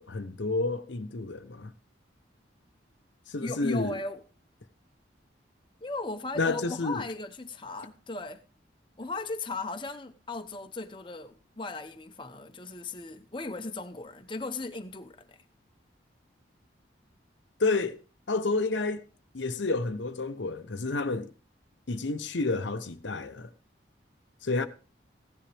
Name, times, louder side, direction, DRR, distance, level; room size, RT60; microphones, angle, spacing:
voice 1, 0.0-1.7 3.3-3.9 6.4-7.1 17.6-18.0 18.3-19.0 19.3-21.3 21.9-23.5 24.4-24.7, left 3 dB, 75° left, 0.9 m, -30 dB
voice 2, 3.4-4.2 5.8-8.4 9.0-15.4, left 2 dB, 25° left, 0.9 m, -37 dB
15.5 x 10.5 x 3.4 m
head